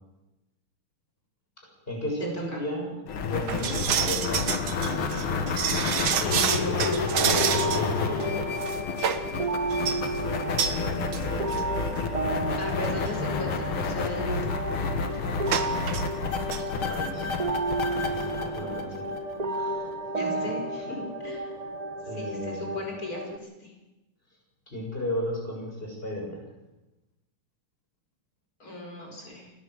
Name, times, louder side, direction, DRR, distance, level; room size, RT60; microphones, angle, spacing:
voice 1, 1.6-3.0 3.2-4.5 4.8-5.3 7.3-8.4 10.8-11.8 16.7-17.3 18.1-19.1 19.5-21.5 22.1-22.7 24.7-26.5, equal, 25° left, -1 dB, 7.1 m, -35 dB
sound 1, 3.1-19.6, left 4 dB, 85° left, 2.4 m, -30 dB
sound 2, 3.5-7.9 8.2-8.3 8.6-9.3 9.7-10.0 10.6-10.8 11.1-11.2 11.5-11.6 12.4-12.5 12.8-13.1 15.5-16.0 16.3-16.6 16.9-17.0, right 8 dB, 80° right, 2.0 m, -28 dB
voice 2, 6.2-7.0 12.6-14.5 18.3-19.0 20.1-20.6 22.2-23.7 28.6-29.5, left 1 dB, 45° left, 1 dB, 5.3 m, -36 dB
sound 3, 7.4-23.4, right 2 dB, 50° right, 0.4 m, -33 dB
29.5 x 11.5 x 8.1 m, 1.0 s
omnidirectional pair, 2.2 m